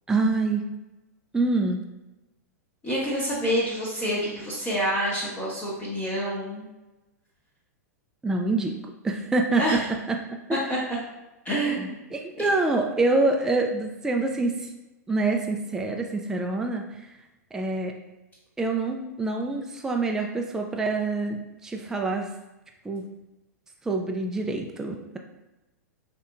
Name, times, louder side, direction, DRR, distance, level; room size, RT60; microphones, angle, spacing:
voice 1, 0.1-0.6 1.3-1.8 8.2-8.7 9.0-9.8 10.1-10.6 11.8-14.7 15.1-17.0 17.5-17.9 18.6-22.3 22.8-23.1 23.8-25.2, right 3 dB, 5° right, 2 dB, 0.3 m, -26 dB
voice 2, 2.8-6.7 9.6-9.8 10.7-10.8 11.4-12.0 12.4-12.5, equal, 20° left, -6 dB, 0.8 m, -27 dB
4.2 x 2.8 x 2.3 m, 1.0 s
figure-of-eight pair, 105°, 9 cm